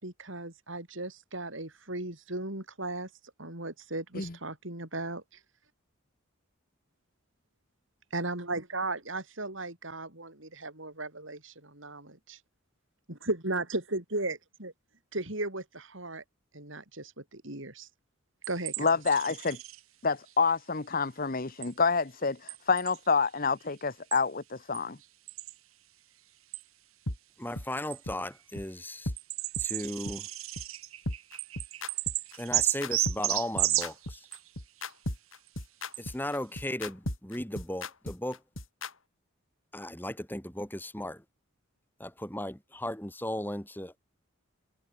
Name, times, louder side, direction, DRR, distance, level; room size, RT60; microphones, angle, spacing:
voice 1, 0.0-3.1 3.4-5.4 8.1-12.4 13.1-14.7 15.1-16.2 16.5-17.9 18.5-18.9, right 2 dB, 65° right, 5.3 m, -36 dB
sound 1, 18.4-19.8 21.6-21.7 22.5-23.0 24.1-24.2 24.7-24.8 25.3-25.5 26.5-26.6 27.9-28.0 28.6-28.7 29.2-34.5 35.5-35.6 35.9-36.0, right 15 dB, 85° right, 1.8 m, -32 dB
voice 2, 18.8-19.6 20.0-25.0, left 4 dB, 45° left, 1.1 m, -28 dB
sound 2, 27.1-27.2 27.6-27.7 28.1-28.2 28.6-28.7 29.1-29.2 29.6-29.7 30.1-30.2 30.6-30.7 31.1-38.9, left 1 dB, 75° left, 4.1 m, -36 dB
voice 3, 27.4-29.1 29.6-30.3 32.4-34.2 36.0-38.4 39.7-41.2 42.0-44.0, left 1 dB, 10° left, 4.7 m, -36 dB
head